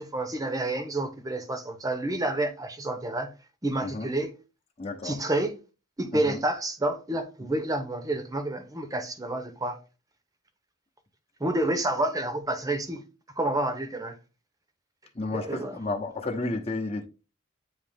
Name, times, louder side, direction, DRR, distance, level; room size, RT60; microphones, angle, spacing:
voice 1, 0.0-3.3 3.6-4.3 5.0-5.6 6.0-9.8 11.4-13.0 13.4-14.2 15.3-15.8, right 1 dB, 15° right, 0.9 m, -29 dB
voice 2, 4.8-5.2 6.1-6.4 15.1-17.1, left 2 dB, 30° left, 1.0 m, -32 dB
8.9 x 3.1 x 3.5 m
head